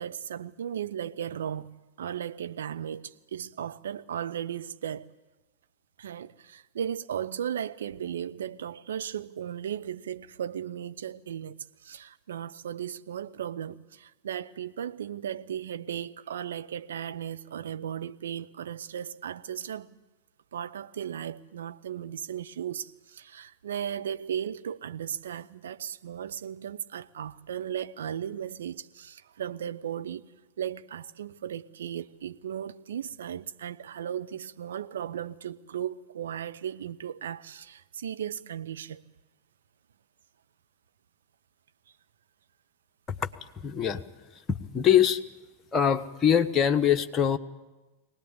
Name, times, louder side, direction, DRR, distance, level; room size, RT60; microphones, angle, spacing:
voice 1, 0.0-5.1 6.0-11.5 11.8-20.0 20.5-30.3 30.6-39.0, right 9 dB, 65° right, 0.8 m, -36 dB
voice 2, 43.6-44.0 44.3-45.2 45.7-47.4, left 9 dB, 25° left, 1.3 m, -23 dB
23.5 x 18.5 x 8.7 m
figure-of-eight pair, 90°, 0 cm